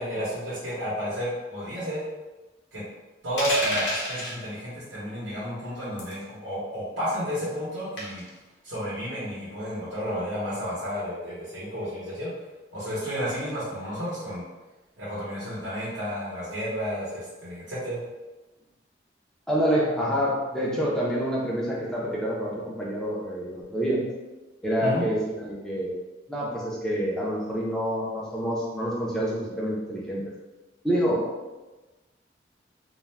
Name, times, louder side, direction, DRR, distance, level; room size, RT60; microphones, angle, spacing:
voice 1, 0.0-2.0 2.7-2.8 3.2-8.2 8.6-12.3 12.7-14.5 15.0-18.0 24.8-25.0, equal, 85° right, -8 dB, 0.9 m, -31 dB
sound 1, 3.4-4.4 6.0-6.2 8.0-8.3, left 1 dB, 75° left, 0.7 m, -28 dB
voice 2, 19.5-24.1 24.6-25.9 26.3-30.2 30.8-31.2, equal, 5° left, -5 dB, 0.5 m, -27 dB
2.3 x 2.1 x 3.2 m, 1.1 s
head